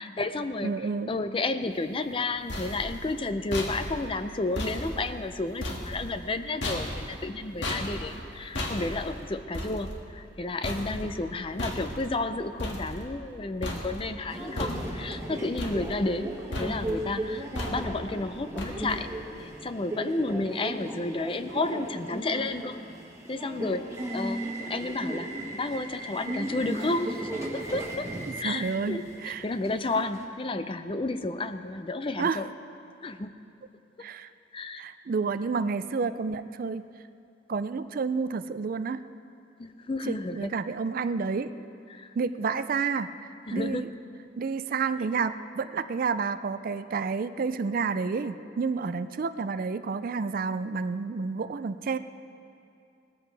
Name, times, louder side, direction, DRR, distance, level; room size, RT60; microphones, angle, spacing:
voice 1, 0.0-0.7 1.1-16.3 16.6-19.1 19.4-22.8 23.3-25.3 25.5-28.1 28.4-32.5 33.0-33.3 34.5-34.8 39.6-40.5 41.9-42.1 43.5-43.9, left 2 dB, 30° left, 10 dB, 0.5 m, -31 dB
voice 2, 0.6-1.1 28.4-29.5 32.2-32.4 34.0-34.3 34.8-36.8 37.5-39.0 40.1-41.6 42.2-43.9 44.4-52.0, right 5 dB, 45° right, 12 dB, 0.4 m, -30 dB
sound 1, 2.1-13.4 13.6-14.2 14.6-15.2 15.6-16.3 16.5-17.0 17.6-18.1 18.6-19.1, left 1 dB, 70° left, 1.8 m, -36 dB
Subway metro underground, 14.3-30.2, right 1 dB, 15° right, 1.4 m, -36 dB
19.5 x 14.0 x 3.4 m, 2.5 s
head